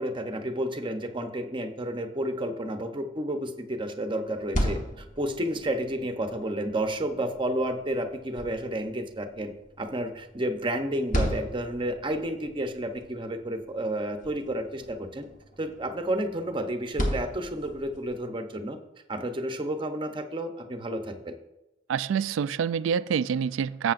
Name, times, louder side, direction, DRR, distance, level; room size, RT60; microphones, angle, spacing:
voice 1, 0.0-15.3 15.6-18.8 19.1-21.3, right 1 dB, 25° right, 0.7 m, -31 dB
sound 1, 4.2-18.2, equal, 40° left, 1.2 m, -36 dB
voice 2, 21.9-23.9, right 7 dB, 85° right, 0.3 m, -26 dB
12.0 x 7.8 x 2.5 m
head